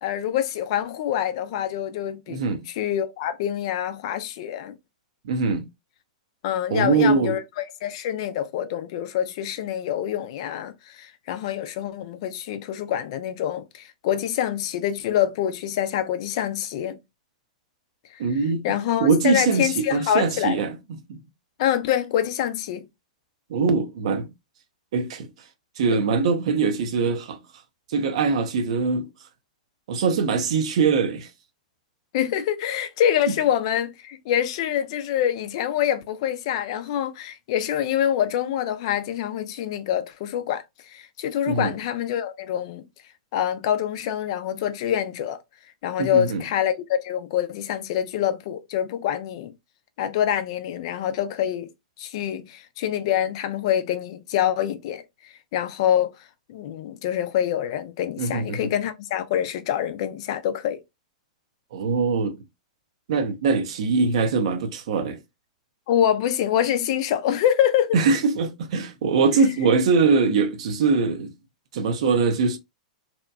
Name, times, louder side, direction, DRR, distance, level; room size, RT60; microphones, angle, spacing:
voice 1, 0.0-4.8 6.4-17.0 18.1-20.6 21.6-22.9 32.1-42.8 43.3-45.4 45.8-49.5 50.0-51.7 52.0-56.1 56.5-60.8 65.9-68.0, left 10 dB, 50° left, 0.4 m, -26 dB
voice 2, 2.3-2.6 5.2-5.6 6.7-7.4 18.2-18.7 19.0-21.2 23.5-24.3 24.9-25.3 25.8-27.4 27.9-29.1 29.9-31.3 33.3-33.4 41.5-41.8 46.0-46.4 58.2-58.7 61.7-62.4 63.1-65.2 67.9-71.3 71.7-72.6, right 4 dB, 60° right, 0.6 m, -22 dB
2.8 x 2.2 x 2.2 m
figure-of-eight pair, 105°, 4 cm